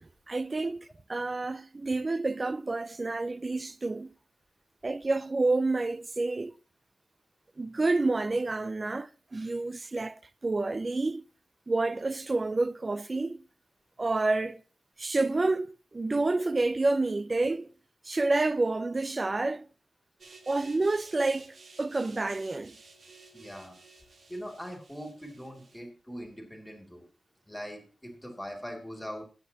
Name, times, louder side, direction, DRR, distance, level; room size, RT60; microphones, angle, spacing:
voice 1, 0.0-4.1 4.8-6.5 7.6-11.2 11.7-13.4 14.0-14.6 15.0-17.7 18.1-19.7 20.5-22.7, right 2 dB, 25° right, 0.4 m, -29 dB
sound 1, 20.2-25.8, right 3 dB, 60° right, 1.8 m, -54 dB
voice 2, 23.2-23.8 24.3-27.1 27.5-29.2, equal, 5° left, 2.5 m, -41 dB
22.0 x 8.1 x 2.9 m
wide cardioid pair, 165°, 0 cm